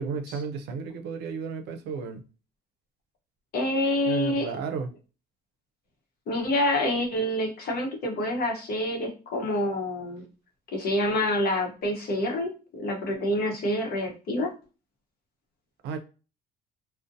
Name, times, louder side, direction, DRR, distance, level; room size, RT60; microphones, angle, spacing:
voice 1, 0.0-2.2 4.1-4.9 15.8-16.0, right 5 dB, 80° right, 0.5 m, -33 dB
voice 2, 3.5-4.6 6.3-10.2 10.7-14.5, left 1 dB, 65° left, 0.8 m, -27 dB
2.5 x 2.1 x 2.5 m
cardioid pair, 110°, 17 cm